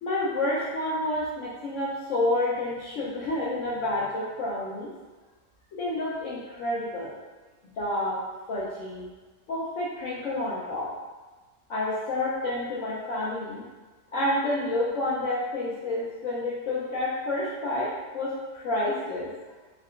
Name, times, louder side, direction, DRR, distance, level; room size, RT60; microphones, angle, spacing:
voice 1, 0.0-4.9 5.7-7.1 7.8-8.2 8.5-9.1 9.5-10.9 11.7-13.6 14.1-17.9 18.1-19.3, left 1 dB, 75° left, -6 dB, 0.7 m, -29 dB
3.6 x 2.2 x 2.3 m, 1.3 s
omnidirectional pair, 1.9 m